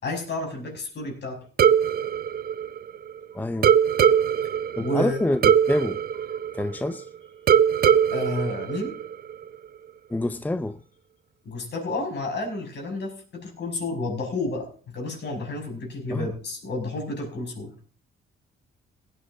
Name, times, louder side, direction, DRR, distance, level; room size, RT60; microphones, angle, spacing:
voice 1, 0.0-1.4 4.8-5.2 8.1-9.0 11.4-17.7, left 2 dB, 60° left, 6.0 m, -31 dB
sound 1, 1.6-3.2 3.6-7.0 7.5-9.4, right 8 dB, 50° right, 0.6 m, -21 dB
voice 2, 3.3-3.7 4.8-6.0 6.5-7.1 10.1-10.8 16.1-16.3, left 1 dB, 10° left, 0.6 m, -27 dB
17.0 x 9.6 x 3.7 m
cardioid pair, 90°, 20 cm